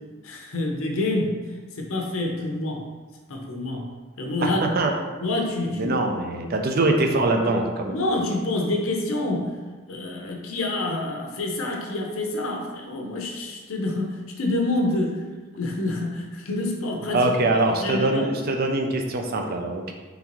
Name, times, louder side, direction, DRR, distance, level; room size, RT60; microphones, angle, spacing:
voice 1, 0.2-1.4 1.8-2.8 3.3-3.9 4.2-4.6 5.2-5.9 7.9-9.5 9.9-15.2 15.5-17.3 17.8-18.3, left 2 dB, 75° left, 1 dB, 0.7 m, -27 dB
voice 2, 4.4-4.9 5.7-7.9 17.1-19.9, right 2 dB, 45° right, 3 dB, 0.4 m, -23 dB
3.9 x 3.4 x 3.0 m, 1.3 s
head